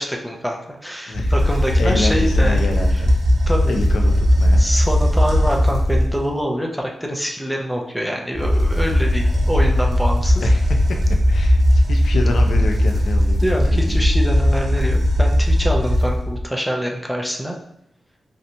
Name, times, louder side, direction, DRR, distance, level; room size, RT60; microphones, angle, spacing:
voice 1, 0.0-2.6 3.5-3.8 4.6-10.5 13.4-17.6, equal, ahead, 0 dB, 0.4 m, -25 dB
sound 1, 1.1-6.3 8.3-16.4, equal, 50° right, 0.6 m, -17 dB
voice 2, 1.8-3.1 3.7-4.6 10.4-10.8 11.3-14.0, left 3 dB, 75° left, 3 dB, 0.4 m, -27 dB
3.2 x 2.8 x 2.6 m, 0.79 s
wide cardioid pair, 175°, 0 cm